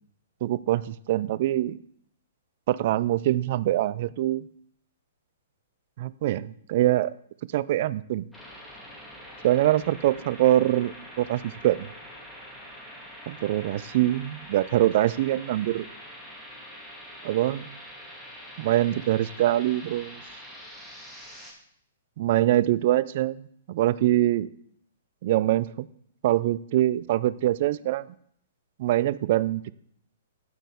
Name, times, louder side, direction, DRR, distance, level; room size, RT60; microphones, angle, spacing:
voice 1, 0.4-1.8 2.7-4.5 6.0-7.1 7.5-8.3 9.4-11.9 13.3-15.9 17.2-17.7 18.6-20.2 22.2-24.5 25.2-25.9 26.2-28.1 28.8-29.7, right 14 dB, 50° right, 19 dB, 0.4 m, -24 dB
sound 1, 8.3-21.5, equal, 5° left, 2.1 m, -45 dB
9.6 x 8.9 x 3.5 m, 0.66 s
figure-of-eight pair, 115°, 0 cm